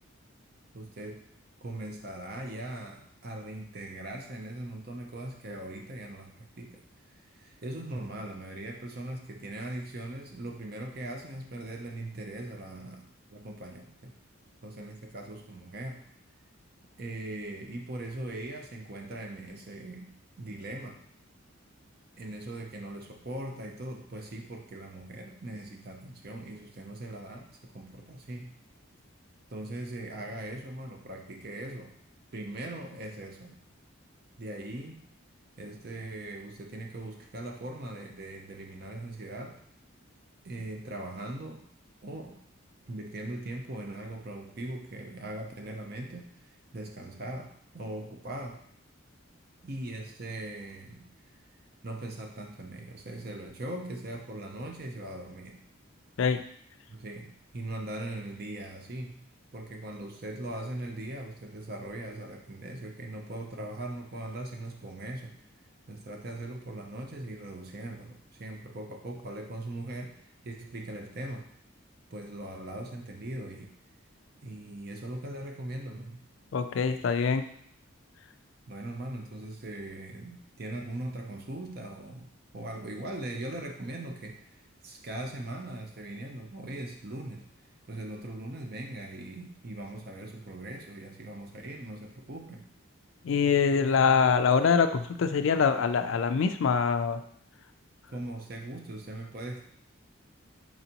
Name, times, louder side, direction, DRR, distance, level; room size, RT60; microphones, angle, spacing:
voice 1, 0.7-1.3 1.6-6.8 7.3-14.1 14.6-16.0 17.0-21.0 22.2-28.6 29.5-32.0 32.3-33.6 34.4-35.0 35.6-39.6 40.4-41.6 42.0-42.4 42.9-48.6 49.6-51.1 51.8-55.6 56.9-65.4 65.9-71.5 72.1-73.7 74.4-76.3 78.7-87.5 87.8-92.7 98.1-99.6, right 1 dB, 45° right, 2 dB, 0.6 m, -40 dB
voice 2, 76.5-77.4 93.2-97.2, left 6 dB, 70° left, 9 dB, 0.3 m, -24 dB
4.4 x 3.9 x 2.9 m, 0.65 s
head